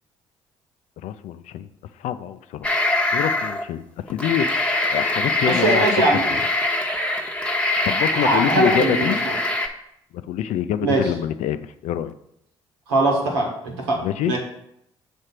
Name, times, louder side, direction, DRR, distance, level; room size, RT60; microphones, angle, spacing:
voice 1, 1.0-1.7 2.0-2.7 3.1-5.9 7.9-9.2 10.3-12.1 14.0-14.3, left 10 dB, 65° left, 12 dB, 0.5 m, -26 dB
sound 1, 2.6-3.6 4.1-9.7, left 2 dB, 10° left, 1.0 m, -23 dB
voice 2, 5.4-6.3 8.1-9.3 10.8-11.1 12.9-14.0 14.3-14.4, right 2 dB, 90° right, -1 dB, 1.6 m, -21 dB
6.3 x 3.4 x 5.9 m, 0.77 s
hypercardioid pair, 50°, 13 cm